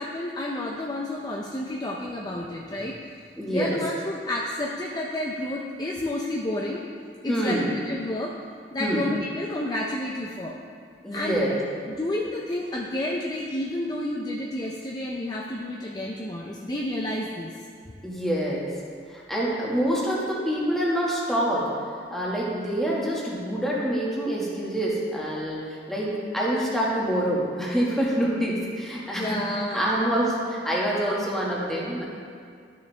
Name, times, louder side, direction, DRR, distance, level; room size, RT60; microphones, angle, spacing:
voice 1, 0.0-6.8 7.2-8.4 8.7-10.6 11.1-11.4 11.9-17.5 29.1-30.0, left 1 dB, 25° left, -2 dB, 0.5 m, -30 dB
voice 2, 3.4-3.8 7.3-7.7 8.8-9.0 11.0-11.6 18.0-18.7 19.1-21.7 22.1-29.4 29.7-32.1, equal, ahead, -6 dB, 1.6 m, -26 dB
12.5 x 6.2 x 3.4 m, 2.2 s
head